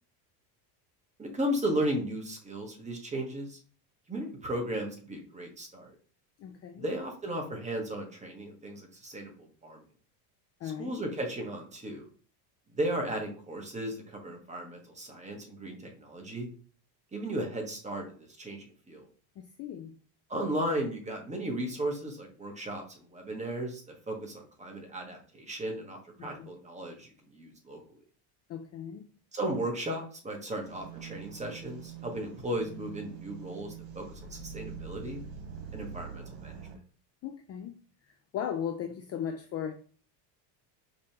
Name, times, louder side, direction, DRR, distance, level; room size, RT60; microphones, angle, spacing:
voice 1, 1.2-3.6 4.1-5.9 6.8-9.8 10.8-12.1 12.7-16.5 17.1-19.1 20.3-27.8 29.3-35.2 35.7-36.6, right 1 dB, 15° right, 1.3 m, -35 dB
voice 2, 6.4-6.9 10.6-11.0 19.4-19.9 26.2-26.5 28.5-29.0 37.2-37.7 38.0-39.7, left 8 dB, 35° left, 0.4 m, -37 dB
sound 1, 30.6-36.8, right 7 dB, 75° right, 1.6 m, -44 dB
5.1 x 3.3 x 2.8 m
supercardioid pair, 115°, 48 cm